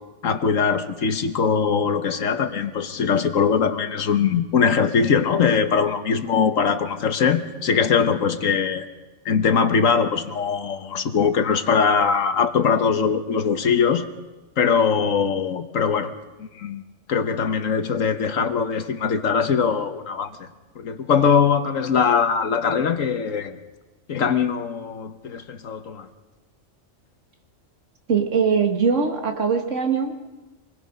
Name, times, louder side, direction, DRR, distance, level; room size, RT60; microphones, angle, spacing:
voice 1, 0.2-8.9 9.2-14.1 14.6-16.1 16.4-16.8 17.1-20.3 20.8-23.6 24.1-26.1, left 6 dB, 80° left, 8 dB, 1.5 m, -21 dB
voice 2, 28.1-30.1, right 6 dB, 65° right, 4 dB, 2.2 m, -21 dB
26.5 x 21.0 x 5.3 m, 1.1 s
omnidirectional pair, 1.3 m